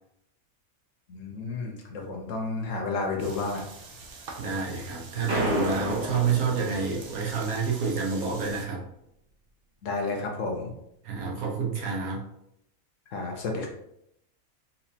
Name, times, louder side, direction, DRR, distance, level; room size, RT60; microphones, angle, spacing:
voice 1, 1.1-3.6 9.8-10.7 13.1-13.7, left 3 dB, 65° left, 0 dB, 1.1 m, -31 dB
sound 1, 3.2-8.6, right 3 dB, 55° right, 0.7 m, -45 dB
voice 2, 4.4-8.8 11.0-12.3, right 5 dB, 90° right, -2 dB, 1.4 m, -28 dB
sound 2, 5.3-7.7, equal, 70° right, 1.5 m, -32 dB
4.2 x 2.6 x 2.8 m, 0.79 s
omnidirectional pair, 1.5 m